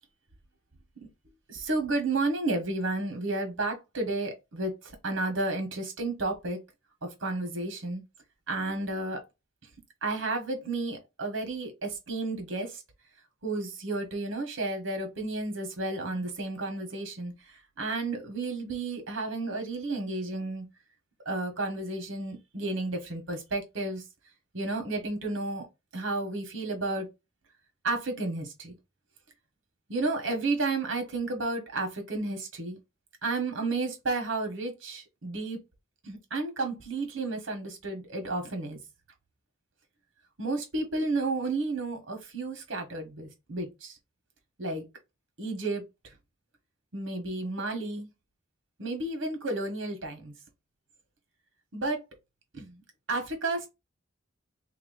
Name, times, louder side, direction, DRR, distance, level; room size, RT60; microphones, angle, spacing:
voice 1, 1.5-4.7 5.0-6.6 7.2-8.0 8.5-9.2 10.0-12.7 13.4-17.3 17.8-20.6 21.3-24.0 24.5-25.7 25.9-27.1 27.8-28.7 29.9-32.8 33.2-35.6 36.1-38.8 40.4-43.9 44.6-44.8 45.4-45.8 46.9-48.1 48.8-50.3 51.7-52.0 52.5-52.7 53.1-53.7, right 2 dB, 75° right, 1.4 m, -32 dB
3.0 x 3.0 x 4.0 m
head